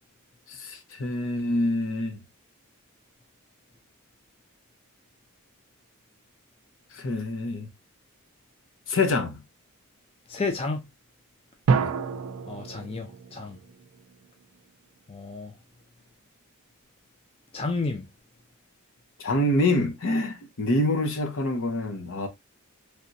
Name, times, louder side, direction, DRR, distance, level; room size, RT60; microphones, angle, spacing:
voice 1, 0.5-2.2 6.9-7.7 8.9-9.4 11.8-11.9 19.2-22.3, left 1 dB, 60° left, 0.7 m, -26 dB
voice 2, 10.3-10.9 12.5-13.6 15.1-15.5 17.5-18.1, left 3 dB, 25° left, 0.4 m, -31 dB
sound 1, 11.7-14.4, right 5 dB, 80° right, 0.4 m, -29 dB
3.3 x 2.8 x 2.5 m
head